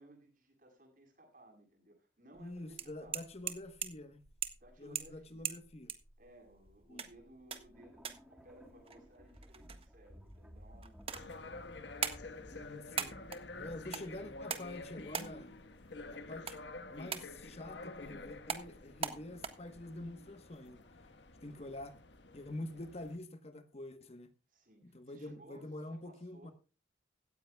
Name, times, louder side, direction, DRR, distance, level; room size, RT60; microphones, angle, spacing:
voice 1, 0.0-3.3 4.6-5.5 6.2-11.7 22.7-22.9 24.5-26.5, right 1 dB, 50° right, 7.6 m, -60 dB
voice 2, 2.4-4.2 4.8-5.9 6.9-7.0 12.5-13.2 13.6-15.6 16.1-16.6 16.9-21.1 21.4-22.0 22.3-24.3 24.8-26.5, left 1 dB, 35° left, 1.2 m, -46 dB
sound 1, 2.4-19.5, right 7 dB, 35° right, 1.5 m, -44 dB
sound 2, 7.7-14.6, equal, 5° right, 2.0 m, -58 dB
sound 3, 11.1-23.2, left 2 dB, 90° left, 1.4 m, -49 dB
17.0 x 14.5 x 2.3 m
head